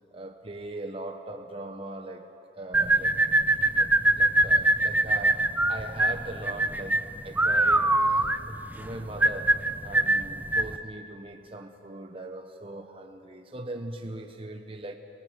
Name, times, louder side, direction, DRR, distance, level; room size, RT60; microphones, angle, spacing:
voice 1, 0.1-3.2 3.7-15.0, right 2 dB, 30° right, 0.9 m, -40 dB
sound 1, 2.7-10.8, right 2 dB, 10° right, 0.5 m, -23 dB
26.0 x 19.0 x 6.6 m
head